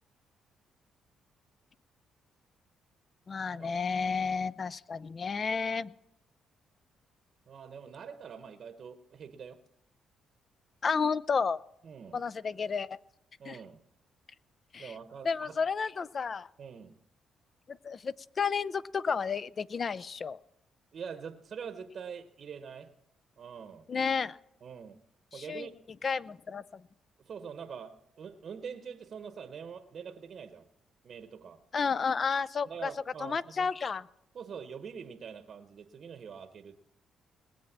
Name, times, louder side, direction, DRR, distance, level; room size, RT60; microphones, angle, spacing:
voice 1, 3.3-5.9 10.8-11.6 12.1-13.0 13.5-13.6 14.7-14.9 15.2-16.5 17.7-20.4 23.9-24.4 25.3-25.7 26.0-26.8 31.7-32.9 33.2-34.1, left 5 dB, 40° left, 0.4 m, -31 dB
voice 2, 7.5-9.6 11.8-12.3 13.4-13.9 14.8-15.6 16.6-17.0 20.9-22.9 23.4-23.9 24.6-25.0 25.3-25.9 27.3-30.7 31.0-31.6 32.7-33.7 34.3-36.8, right 6 dB, 55° right, 0.9 m, -44 dB
19.5 x 7.7 x 7.3 m
cardioid pair, 90°, 0 cm